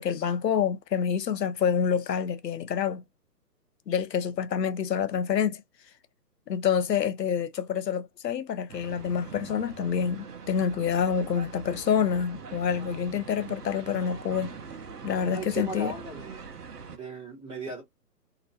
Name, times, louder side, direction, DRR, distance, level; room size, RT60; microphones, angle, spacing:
voice 1, 0.0-3.0 3.9-5.6 6.5-14.6 15.0-15.9, left 7 dB, 90° left, 0.6 m, -27 dB
sound 1, 8.7-17.0, right 5 dB, 70° right, 0.9 m, -42 dB
voice 2, 15.3-16.5 16.9-17.8, right 3 dB, 10° right, 1.0 m, -37 dB
2.9 x 2.9 x 2.7 m
figure-of-eight pair, 140°, 48 cm